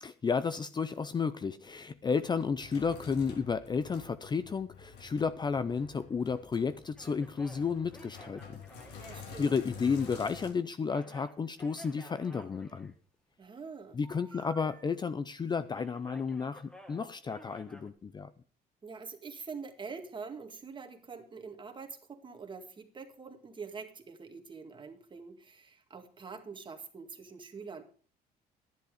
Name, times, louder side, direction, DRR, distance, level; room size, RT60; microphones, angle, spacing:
voice 1, 0.0-8.6 8.9-12.9 13.9-18.3, left 5 dB, 25° left, 13 dB, 0.5 m, -32 dB
Sink (filling or washing), 1.7-10.5, left 5 dB, 90° left, 3.2 m, -50 dB
sound 1, 7.0-10.6 10.8-13.3 14.0-15.4 15.7-17.9, equal, 5° left, 2.0 m, -54 dB
voice 2, 9.1-9.6 13.4-14.0 14.3-14.4 18.8-27.8, right 5 dB, 30° right, 6 dB, 2.0 m, -45 dB
11.5 x 10.5 x 4.9 m, 0.41 s
cardioid pair, 110°, 17 cm